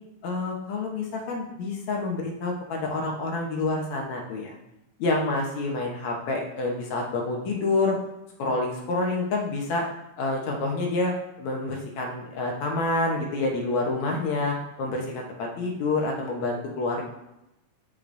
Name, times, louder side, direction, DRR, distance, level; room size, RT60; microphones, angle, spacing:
voice 1, 0.2-4.5 5.0-7.9 8.4-9.9 10.2-11.1 11.4-17.0, left 2 dB, 70° left, 0 dB, 2.2 m, -28 dB
12.0 x 4.8 x 2.6 m, 0.90 s
omnidirectional pair, 3.6 m